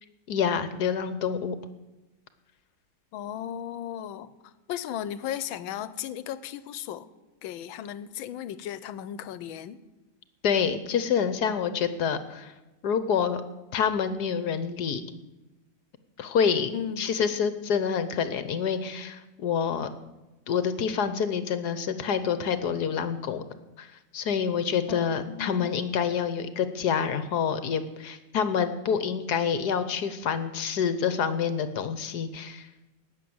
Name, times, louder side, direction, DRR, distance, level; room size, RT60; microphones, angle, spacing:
voice 1, 0.3-1.6 10.4-12.5 12.8-13.4 13.7-15.0 16.2-16.7 17.0-19.9 20.5-23.4 23.8-32.7, left 7 dB, 65° left, 12 dB, 1.3 m, -27 dB
voice 2, 3.1-7.1 7.4-9.8 16.7-17.1 24.9-25.7, left 10 dB, 90° left, 16 dB, 1.5 m, -36 dB
19.0 x 6.9 x 7.8 m, 1.1 s
omnidirectional pair, 2.1 m